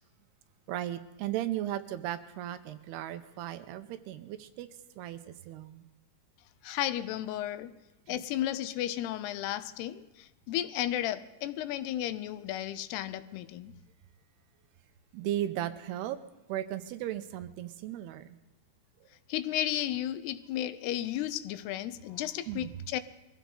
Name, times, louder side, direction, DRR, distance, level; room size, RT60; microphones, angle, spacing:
voice 1, 0.7-4.7 5.0-5.2 5.5-5.8 8.1-8.2 15.1-16.2 16.5-18.3 22.5-22.7, right 12 dB, 85° right, 2.8 m, -36 dB
voice 2, 6.6-7.7 8.1-13.7 19.3-23.0, left 12 dB, 85° left, 2.8 m, -33 dB
22.5 x 15.5 x 3.9 m
omnidirectional pair, 4.6 m